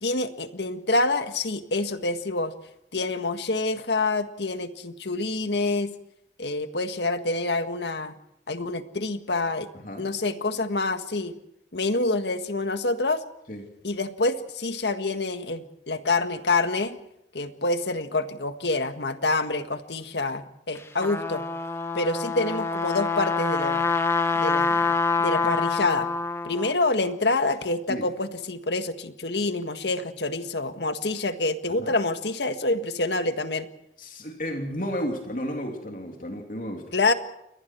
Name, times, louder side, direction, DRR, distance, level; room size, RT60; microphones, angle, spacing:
voice 1, 0.0-2.5 2.9-5.9 6.4-8.1 8.5-9.7 10.0-11.3 11.7-13.2 13.8-17.0 17.3-21.4 21.9-23.9 24.4-25.0 25.2-26.1 26.4-33.7 36.9-37.1, left 2 dB, 80° left, 9 dB, 1.7 m, -27 dB
voice 2, 9.7-10.1 13.5-13.7 27.9-28.1 31.7-32.0 34.0-36.9, equal, 50° left, 3 dB, 3.1 m, -33 dB
Trumpet, 20.8-26.7, left 4 dB, 15° left, 1.3 m, -26 dB
29.0 x 23.5 x 4.6 m, 0.82 s
head